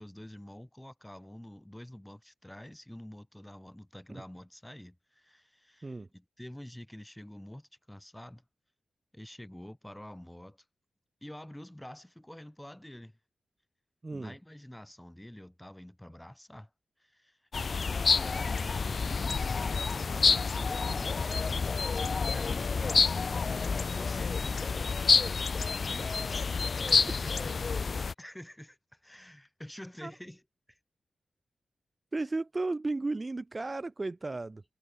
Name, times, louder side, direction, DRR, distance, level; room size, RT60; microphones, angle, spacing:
voice 1, 0.0-8.4 9.1-10.6 11.2-13.1 14.1-16.7 17.0-17.4 17.9-21.7 22.3-23.6 23.9-26.2 26.6-27.5 28.2-30.4 30.7-30.8 32.2-32.3, left 1 dB, 5° left, 5.1 m, -47 dB
voice 2, 14.0-14.3 30.0-30.1 32.1-34.6, right 3 dB, 30° right, 1.3 m, -34 dB
sound 1, 17.5-28.1, left 4 dB, 50° left, 0.3 m, -28 dB
wide cardioid pair, 95°, 0 cm